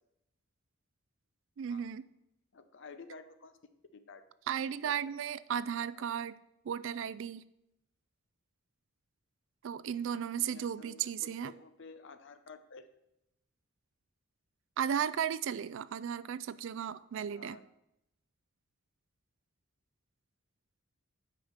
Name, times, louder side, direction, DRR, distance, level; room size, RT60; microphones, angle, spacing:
voice 1, 1.6-2.0 4.5-6.4 6.7-7.5 9.6-11.5 14.8-17.6, right 8 dB, 60° right, 17 dB, 0.3 m, -35 dB
voice 2, 2.5-3.6 3.9-4.2 4.6-5.1 5.9-6.1 10.4-12.9 17.3-17.7, left 4 dB, 60° left, 10 dB, 0.7 m, -52 dB
9.1 x 5.1 x 5.6 m, 0.84 s
head